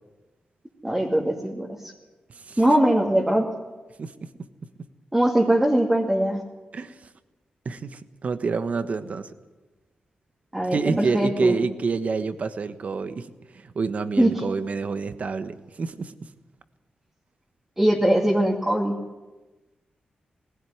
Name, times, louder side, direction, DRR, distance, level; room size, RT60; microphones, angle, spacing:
voice 1, 0.8-1.7 2.6-3.5 5.1-6.4 10.5-11.6 14.2-14.3 17.8-18.9, right 1 dB, 10° right, -2 dB, 2.4 m, -21 dB
voice 2, 4.0-4.3 6.7-7.0 7.6-9.3 10.7-13.3 13.5-16.1, right 4 dB, 55° right, 11 dB, 1.3 m, -28 dB
19.5 x 16.5 x 9.5 m, 1.1 s
wide cardioid pair, 95°, 3 cm